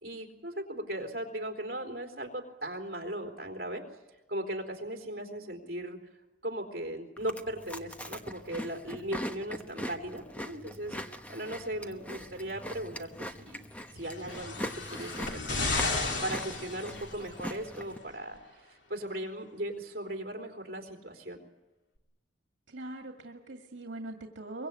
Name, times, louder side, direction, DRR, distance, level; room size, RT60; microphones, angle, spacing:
voice 1, 0.0-3.8 4.3-6.0 6.4-13.6 13.9-15.7 16.2-21.4, right 1 dB, 50° right, 3 dB, 3.9 m, -38 dB
Chewing mastication, 7.2-18.0, equal, 10° left, 1.0 m, -41 dB
sound 1, 14.0-17.4 18.4-18.5, left 3 dB, 75° left, 2.6 m, -33 dB
voice 2, 22.7-24.7, right 2 dB, 80° right, 3 dB, 2.1 m, -41 dB
23.5 x 23.0 x 8.4 m, 1.0 s
head